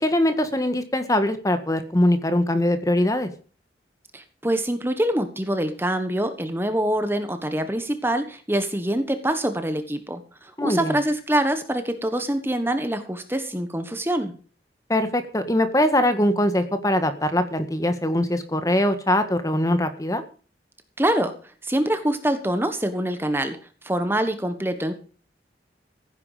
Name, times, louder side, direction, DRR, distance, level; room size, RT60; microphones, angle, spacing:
voice 1, 0.0-3.3 10.6-10.9 14.9-20.2, left 1 dB, 20° left, 9 dB, 1.6 m, -22 dB
voice 2, 4.1-14.3 21.0-21.3 21.6-23.6 23.8-24.9, right 1 dB, 15° right, 8 dB, 1.3 m, -25 dB
15.5 x 9.7 x 5.0 m, 0.39 s
head